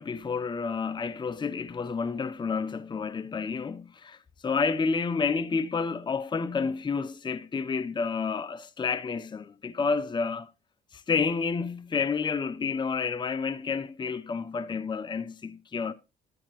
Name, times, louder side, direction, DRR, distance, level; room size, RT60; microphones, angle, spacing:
voice 1, 0.0-10.5 10.9-15.9, left 5 dB, 25° left, 0.6 m, -30 dB
10.5 x 9.8 x 2.9 m
cardioid pair, 90°, 20 cm